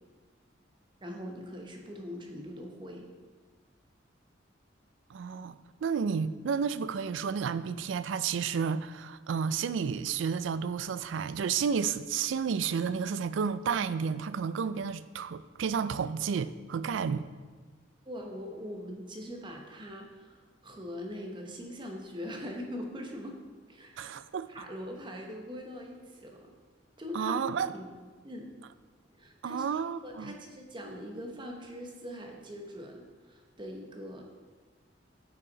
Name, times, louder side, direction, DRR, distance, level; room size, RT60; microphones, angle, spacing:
voice 1, 1.0-3.1 18.0-23.4 23.7-24.2 24.5-26.5 27.0-28.0 28.2-28.5 29.2-34.3, equal, 25° right, 0.9 m, -42 dB
voice 2, 5.1-17.3 24.0-24.5 27.1-27.7 29.4-30.3, right 6 dB, 85° right, 0.4 m, -31 dB
9.6 x 5.9 x 4.0 m
head